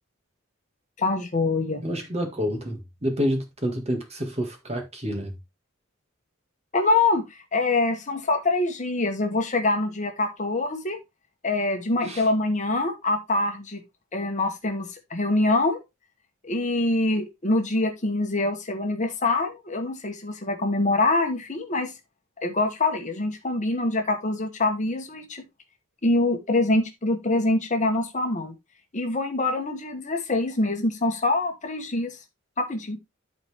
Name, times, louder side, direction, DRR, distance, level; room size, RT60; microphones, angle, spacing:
voice 1, 1.0-1.8 6.7-11.0 11.4-13.8 14.1-15.8 16.4-21.9 22.4-25.4 26.0-28.5 28.9-32.2 32.6-33.0, left 2 dB, 35° left, 1.2 m, -25 dB
voice 2, 1.8-5.3 12.1-12.2, equal, 30° right, 1.9 m, -28 dB
11.5 x 4.3 x 3.5 m
head